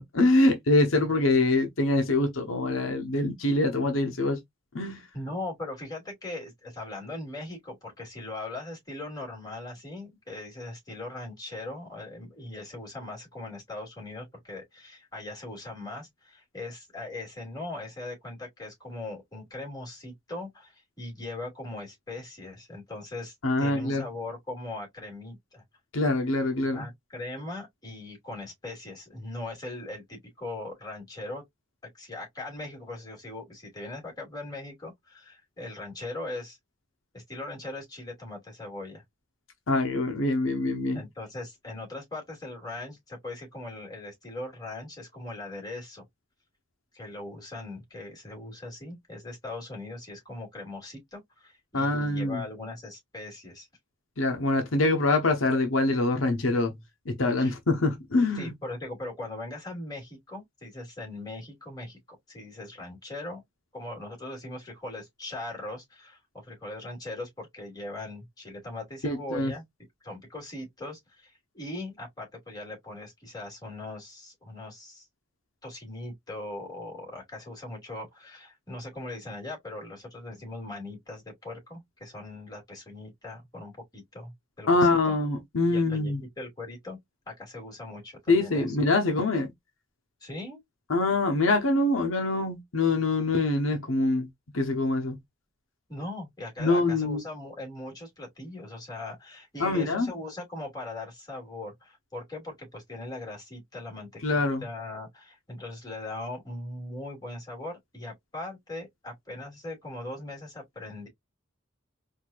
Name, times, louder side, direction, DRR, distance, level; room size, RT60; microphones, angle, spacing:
voice 1, 0.0-4.4 4.7-5.0 23.4-24.0 25.9-26.9 39.7-41.0 51.7-52.4 54.2-56.7 57.1-58.5 69.0-69.5 84.7-86.2 88.3-89.5 90.9-94.3 94.5-95.2 96.6-97.2 99.6-100.1 104.2-104.6, left 2 dB, 75° left, 0.9 m, -24 dB
voice 2, 5.1-25.6 26.7-31.4 31.9-36.6 37.1-39.0 40.9-46.0 46.9-53.7 57.4-57.5 58.3-62.0 62.3-63.4 63.7-69.6 70.0-75.1 75.6-85.1 85.7-87.0 87.3-88.8 90.2-90.6 95.9-111.1, left 2 dB, 20° left, 2.7 m, -40 dB
4.5 x 2.8 x 2.4 m
head